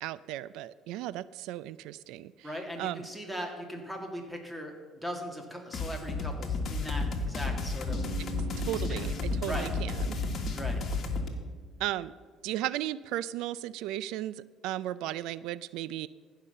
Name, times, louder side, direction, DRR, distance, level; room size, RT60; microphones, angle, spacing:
voice 1, 0.0-2.5 2.8-3.0 8.2-10.4 11.8-12.1 12.4-16.1, right 14 dB, 80° right, 18 dB, 0.3 m, -36 dB
voice 2, 2.4-4.7 5.0-8.1 8.7-9.1 9.5-9.7 10.5-10.8, equal, 5° right, 3 dB, 2.0 m, -39 dB
sound 1, 5.7-11.3, left 3 dB, 40° left, 1.6 m, -32 dB
Bass guitar, 7.9-12.0, right 5 dB, 55° right, 1.2 m, -45 dB
15.0 x 5.6 x 6.7 m, 1.5 s
cardioid pair, 120°, 0 cm